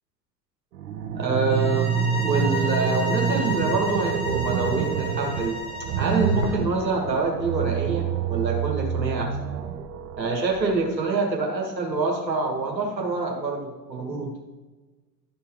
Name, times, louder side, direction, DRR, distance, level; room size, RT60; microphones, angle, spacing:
sound 1, 0.7-10.7, right 7 dB, 65° right, 1.0 m, -27 dB
voice 1, 1.1-5.6 5.9-9.3 10.2-14.3, right 3 dB, 85° right, 0 dB, 1.7 m, -26 dB
sound 2, 1.5-6.6, left 1 dB, 10° left, 1.0 m, -33 dB
12.5 x 4.6 x 3.6 m, 1.3 s
figure-of-eight pair, 75°, 50 cm